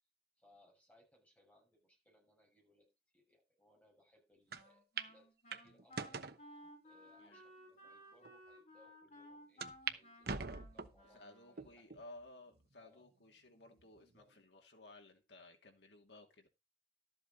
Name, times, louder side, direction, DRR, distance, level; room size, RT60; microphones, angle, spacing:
voice 1, 0.4-12.0 12.8-13.1 13.9-14.3, left 1 dB, 10° left, 6.7 m, -70 dB
Wind instrument woodwind instrument, 4.5-11.9, equal, 40° left, 7.0 m, -58 dB
sound 1, 4.5-4.6 5.0-5.1 5.5-6.4 7.1-7.2 7.9-8.0 8.2-8.3 9.6-10.0 10.2-11.0 11.6-12.0 12.6-12.7 13.8-14.2, right 5 dB, 60° right, 0.9 m, -43 dB
voice 2, 11.1-16.5, left 2 dB, 70° left, 2.6 m, -57 dB
13.0 x 7.8 x 4.0 m
head